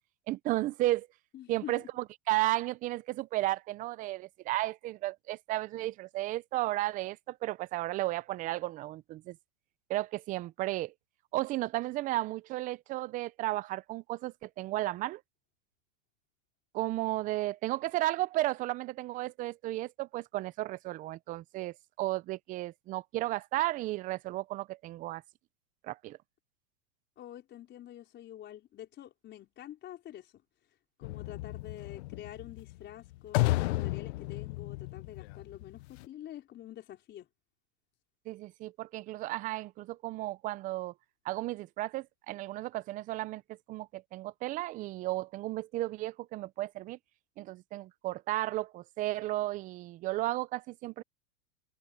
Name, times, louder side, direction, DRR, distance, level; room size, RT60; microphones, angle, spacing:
voice 1, 0.3-1.1 1.5-1.8 2.3-9.4 9.9-10.9 11.3-15.2 16.7-25.2 25.8-26.2 38.3-40.9 41.2-47.0 47.4-51.0, right 17 dB, 25° right, 0.4 m, -34 dB
voice 2, 1.3-1.9 27.2-30.4 31.0-37.3, left 12 dB, 30° left, 4.7 m, -47 dB
sound 1, 31.0-36.0, left 19 dB, 60° left, 0.6 m, -33 dB
supercardioid pair, 135°, 36 cm